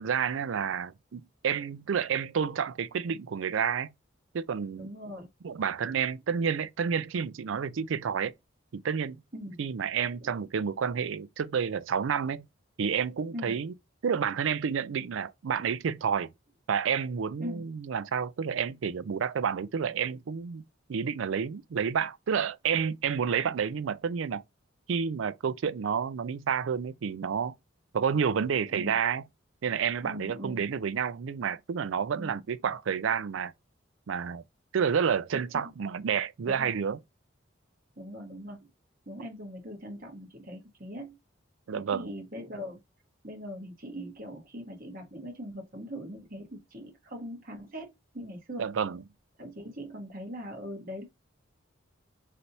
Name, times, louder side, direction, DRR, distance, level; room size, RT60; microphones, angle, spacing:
voice 1, 0.0-3.9 4.3-4.9 5.4-8.3 8.7-9.2 9.6-12.5 12.8-13.7 14.0-16.3 16.7-20.6 20.9-24.4 24.9-27.5 27.9-29.2 29.6-33.5 34.1-34.4 34.7-37.0 41.7-42.1 48.6-49.0, right 7 dB, 80° right, 0.4 m, -30 dB
voice 2, 4.8-5.3 5.8-5.9 9.3-9.6 13.3-13.6 17.4-17.6 28.7-28.9 30.0-30.6 32.1-32.3 35.3-35.4 36.5-36.7 38.0-38.7 39.1-41.2 41.7-42.8 43.2-48.7 49.4-51.0, equal, 45° right, 1.4 m, -41 dB
3.3 x 2.8 x 3.9 m
head